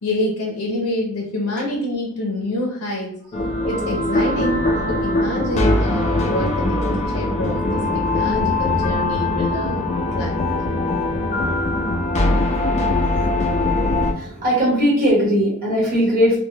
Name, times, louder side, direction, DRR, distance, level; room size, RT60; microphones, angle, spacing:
voice 1, 0.0-3.2 3.6-6.8 7.1-10.4, left 1 dB, 90° left, -1 dB, 0.5 m, -26 dB
sound 1, 3.3-14.1, left 2 dB, 30° left, 0.3 m, -21 dB
voice 2, 14.1-16.4, equal, 40° right, -6 dB, 1.0 m, -20 dB
2.2 x 2.1 x 3.0 m, 0.66 s
head